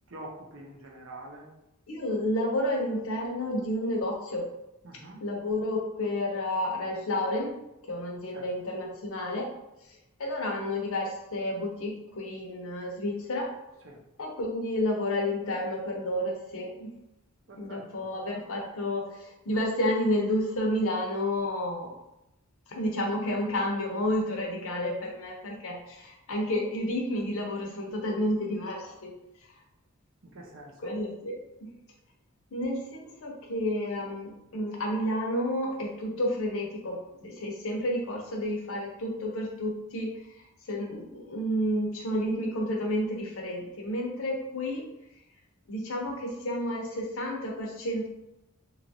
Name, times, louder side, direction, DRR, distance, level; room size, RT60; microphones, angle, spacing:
voice 1, 0.1-1.5 4.8-5.2 8.3-8.5 13.8-14.0 17.5-18.1 30.2-31.0, right 1 dB, 65° right, -1 dB, 0.6 m, -45 dB
voice 2, 1.9-4.4 5.2-7.5 7.9-9.5 10.2-13.5 14.2-16.9 17.6-21.9 22.7-29.1 30.8-31.7 32.5-40.1 40.7-44.8 45.7-48.1, left 1 dB, 70° left, -1 dB, 0.7 m, -30 dB
2.9 x 2.4 x 2.6 m, 0.89 s
head